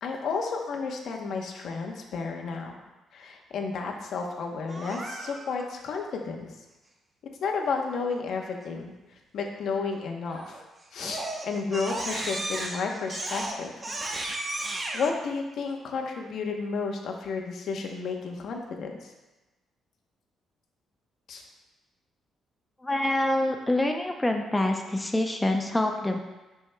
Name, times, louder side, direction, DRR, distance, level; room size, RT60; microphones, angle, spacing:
voice 1, 0.0-2.8 3.1-6.5 7.4-8.9 9.3-10.6 10.9-13.7 14.9-18.9 21.3-21.4, left 4 dB, 70° left, 2 dB, 0.9 m, -32 dB
Crying sobbing, 4.7-5.6 10.3-10.6 11.0-15.1, right 2 dB, 30° right, 0.8 m, -34 dB
voice 2, 22.8-26.2, left 1 dB, 10° left, 3 dB, 0.5 m, -26 dB
11.0 x 4.7 x 2.2 m, 1.1 s
cardioid pair, 90°, 0 cm